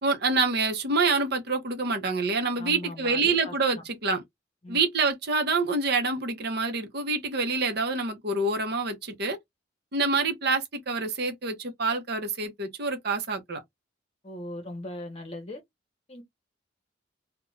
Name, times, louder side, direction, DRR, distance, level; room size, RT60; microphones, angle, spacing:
voice 1, 0.0-4.2 4.7-9.4 9.9-13.6, right 3 dB, 55° right, 0.7 m, -27 dB
voice 2, 2.6-3.8 4.6-4.8 14.2-15.6 16.1-16.2, left 1 dB, 30° left, 0.8 m, -39 dB
2.4 x 2.2 x 3.1 m
head